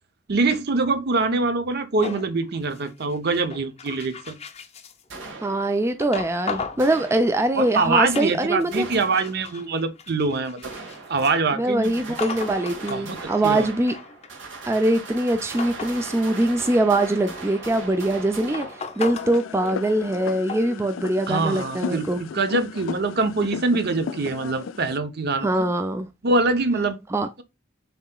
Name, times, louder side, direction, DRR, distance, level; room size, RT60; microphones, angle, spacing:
voice 1, 0.3-4.4 7.5-10.7 11.1-11.9 12.9-13.7 21.3-25.5 26.2-27.0, right 3 dB, 55° right, 0.7 m, -24 dB
sound 1, 2.0-5.0 6.0-6.9 7.4-8.3 8.6-11.3 12.2-13.0 13.6-16.0 16.3-17.9 18.5-20.2 20.5-20.7, left 5 dB, 35° left, 0.6 m, -36 dB
sound 2, 5.1-6.1 6.8-7.8 8.7-9.7 10.6-11.5 11.8-19.3, right 3 dB, 75° right, 1.5 m, -39 dB
voice 2, 5.4-8.9 11.5-13.9 14.7-18.7 19.0-22.2 25.4-26.1 27.1-27.3, right 1 dB, 15° right, 0.4 m, -23 dB
sound 3, 19.1-25.0, left 6 dB, 85° left, 0.4 m, -35 dB
6.8 x 2.8 x 2.2 m
head